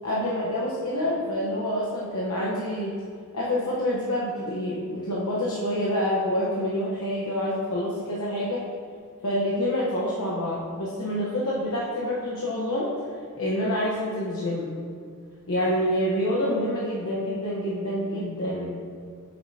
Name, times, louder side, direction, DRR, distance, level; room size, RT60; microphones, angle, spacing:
voice 1, 0.0-2.9 3.3-8.6 9.2-12.9 13.3-14.8 15.5-18.8, left 1 dB, 85° left, -6 dB, 1.1 m, -27 dB
8.8 x 6.5 x 2.8 m, 2.2 s
head